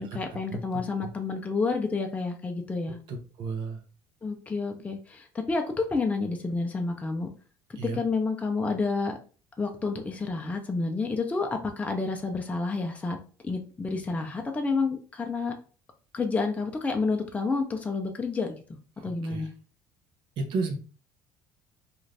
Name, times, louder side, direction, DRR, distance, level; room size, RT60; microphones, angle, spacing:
voice 1, 0.0-3.0 4.2-7.3 7.9-9.2 9.6-13.2 13.4-15.5 16.1-18.5 19.0-19.5, left 4 dB, 15° left, 3 dB, 0.5 m, -29 dB
voice 2, 3.1-3.8 7.8-8.0 19.0-19.4 20.4-20.8, right 4 dB, 60° right, 3 dB, 0.7 m, -32 dB
2.5 x 2.5 x 3.2 m, 0.37 s
supercardioid pair, 105°, 9 cm